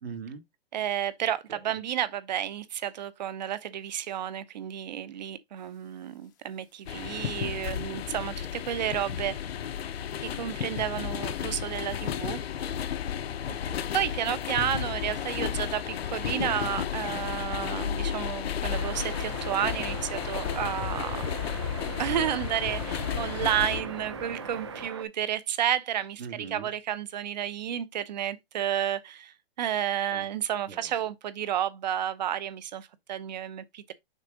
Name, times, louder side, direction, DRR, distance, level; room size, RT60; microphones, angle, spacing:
voice 1, 0.0-0.4 1.5-1.8 13.4-14.0 26.2-26.7 30.1-30.3 30.7-31.0, right 6 dB, 75° right, 2.1 m, -42 dB
voice 2, 0.7-9.4 10.2-12.4 13.9-21.2 22.0-26.2 26.5-33.9, right 10 dB, 45° right, 0.8 m, -31 dB
sound 1, 6.2-6.3 6.6-7.0 7.7-7.8 8.5-8.6 9.2-9.3 9.6-9.7 9.9-10.0 11.1-11.4 11.8-11.9 12.8-12.9 13.4-13.9 14.2-14.4 14.9-15.6 16.6-16.9 17.2-17.3 17.6-17.7 17.9-18.0 18.6-18.7 19.1-19.2 19.8-24.9, left 8 dB, 20° left, 0.6 m, -47 dB
sound 2, 6.9-23.8, left 9 dB, 75° left, 0.8 m, -33 dB
sound 3, 18.7-25.0, right 6 dB, 30° right, 0.4 m, -40 dB
6.5 x 3.7 x 5.0 m
hypercardioid pair, 165°, 31 cm